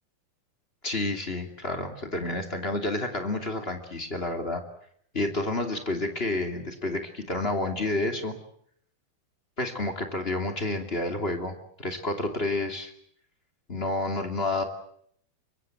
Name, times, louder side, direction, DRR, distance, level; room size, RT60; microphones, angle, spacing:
voice 1, 0.8-4.6 5.1-8.3 9.6-12.9 13.7-14.6, left 2 dB, 20° left, 5 dB, 1.9 m, -30 dB
25.5 x 23.5 x 7.7 m, 0.66 s
omnidirectional pair, 5.1 m